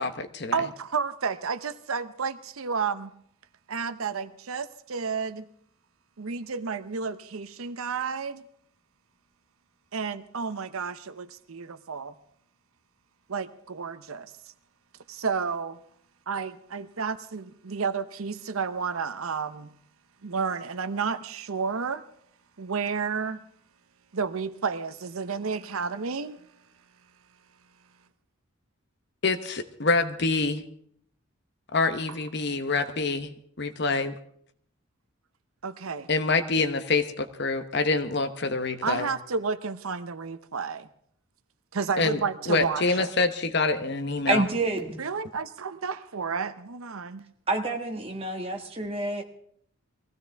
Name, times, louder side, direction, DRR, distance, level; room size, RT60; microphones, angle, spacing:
voice 1, 0.0-0.5 29.2-30.6 31.7-33.3 33.6-34.1 36.1-39.1 42.0-42.2 42.5-44.4, left 3 dB, 50° left, 1.0 m, -26 dB
voice 2, 0.5-3.1 3.7-5.5 6.2-8.4 9.9-12.1 13.3-14.3 15.1-15.8 16.3-19.7 20.2-22.0 22.6-23.4 24.1-26.5 35.6-36.1 38.8-40.9 41.7-43.1 45.0-47.2, right 5 dB, 80° right, 0.7 m, -31 dB
voice 3, 44.3-45.0 47.5-49.2, right 2 dB, 25° right, 1.5 m, -28 dB
21.5 x 16.0 x 3.5 m
head